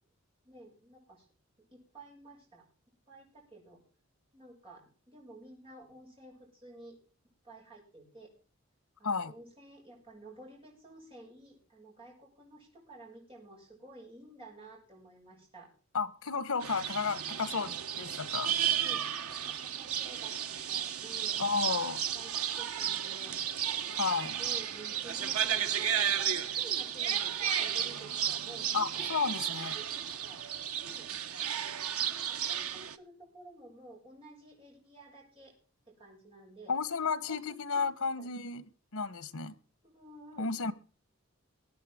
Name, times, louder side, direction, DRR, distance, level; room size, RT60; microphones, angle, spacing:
voice 1, 0.4-1.3 1.7-2.6 3.1-3.8 4.3-7.0 7.4-8.3 9.0-15.7 18.8-20.3 20.7-21.4 22.1-23.4 23.8-24.0 24.4-30.4 30.8-31.1 31.4-31.6 32.1-35.5 36.0-36.7 37.3-38.3 39.8-40.7, right 1 dB, 25° right, 7.6 m, -52 dB
voice 2, 15.9-18.5 21.4-22.0 23.9-24.4 28.7-29.7 36.7-39.5 40.4-40.7, left 4 dB, 85° left, 1.2 m, -33 dB
sound 1, 16.6-33.0, right 9 dB, 90° right, 1.0 m, -33 dB
22.0 x 9.0 x 3.6 m
head